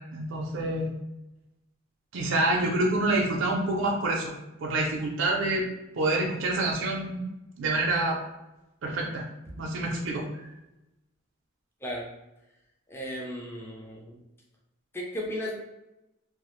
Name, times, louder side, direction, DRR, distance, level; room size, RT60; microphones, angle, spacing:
voice 1, 0.1-0.9 2.1-4.3 4.6-5.7 6.0-7.2 7.6-8.2 8.8-9.3 9.6-10.3, right 2 dB, 65° right, -1 dB, 0.4 m, -27 dB
voice 2, 12.9-14.2 14.9-15.5, equal, 10° left, -2 dB, 0.4 m, -35 dB
2.4 x 2.0 x 2.9 m, 0.94 s
head